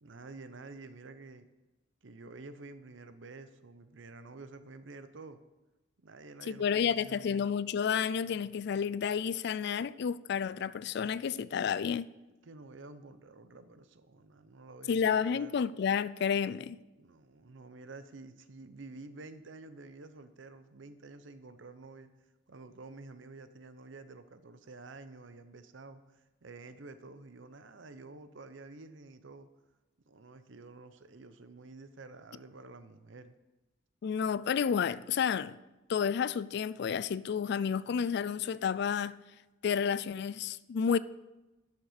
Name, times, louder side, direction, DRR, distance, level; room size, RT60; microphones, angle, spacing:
voice 1, 0.0-1.5 2.0-5.4 6.0-7.5 12.4-15.6 17.0-22.1 22.5-29.5 30.1-33.3, right 3 dB, 75° right, 0.7 m, -50 dB
voice 2, 6.5-12.1 14.9-16.8 34.0-35.6 35.9-39.2 39.6-41.0, left 7 dB, 60° left, 0.3 m, -30 dB
11.5 x 6.5 x 5.1 m
head